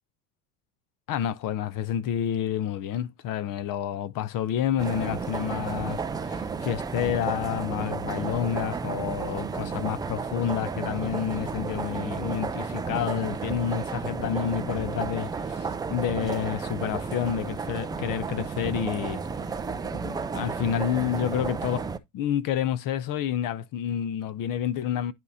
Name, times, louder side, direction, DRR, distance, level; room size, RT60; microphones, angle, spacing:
voice 1, 1.1-19.2 20.0-21.9 22.1-25.1, left 9 dB, 45° left, 0.7 m, -29 dB
sound 1, 4.8-22.0, right 5 dB, 10° right, 0.3 m, -32 dB
11.0 x 4.3 x 2.7 m
hypercardioid pair, 95°, 48 cm